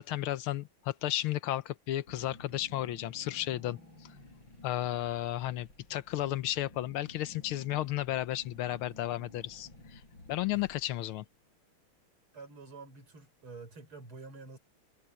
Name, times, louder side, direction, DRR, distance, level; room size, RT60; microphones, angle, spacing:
voice 1, 0.0-3.8 4.6-10.0 10.3-11.2, left 14 dB, 75° left, 1.6 m, -33 dB
Car / Engine, 2.1-11.2, left 2 dB, 60° left, 8.4 m, -54 dB
voice 2, 12.3-14.6, right 4 dB, 75° right, 6.5 m, -48 dB
omnidirectional pair, 2.4 m